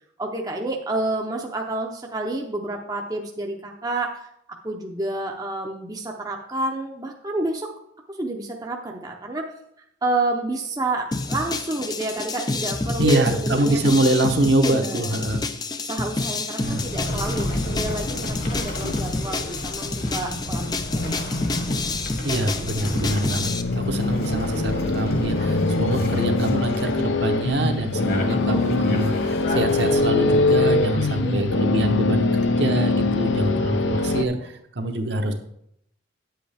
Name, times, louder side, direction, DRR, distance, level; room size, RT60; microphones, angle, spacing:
voice 1, 0.2-4.1 4.6-7.7 8.1-9.5 10.0-13.8 14.6-15.1 15.8-20.6 21.0-21.2 22.3-22.7 31.1-31.6, right 2 dB, 20° right, 1 dB, 0.6 m, -29 dB
sound 1, 11.1-23.6, left 3 dB, 20° left, 0.4 m, -29 dB
voice 2, 13.0-15.4 16.6-16.8 22.2-35.3, right 1 dB, 60° right, 4 dB, 0.9 m, -24 dB
sound 2, 16.6-29.9, left 1 dB, 50° left, 1.4 m, -31 dB
sound 3, 23.3-34.3, left 3 dB, 70° left, 0.6 m, -23 dB
9.6 x 7.8 x 3.4 m, 0.75 s
head